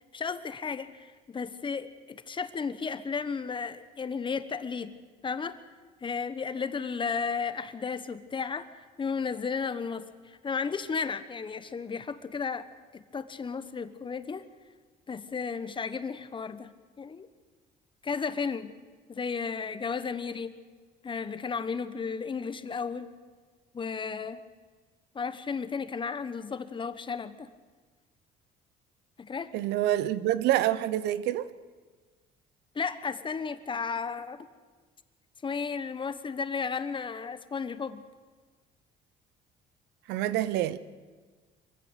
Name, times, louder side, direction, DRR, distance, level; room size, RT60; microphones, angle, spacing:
voice 1, 0.1-4.9 5.2-5.6 6.0-8.7 9.0-12.7 12.9-14.4 15.1-16.7 17.0-17.3 18.0-18.7 19.1-20.5 21.0-23.1 23.7-24.4 25.1-27.5 29.2-29.5 32.7-34.5 35.4-38.0, left 5 dB, 30° left, 1.3 m, -34 dB
voice 2, 29.5-31.5 40.1-40.8, right 13 dB, 90° right, 0.9 m, -27 dB
24.0 x 15.5 x 8.2 m
cardioid pair, 110°, 17 cm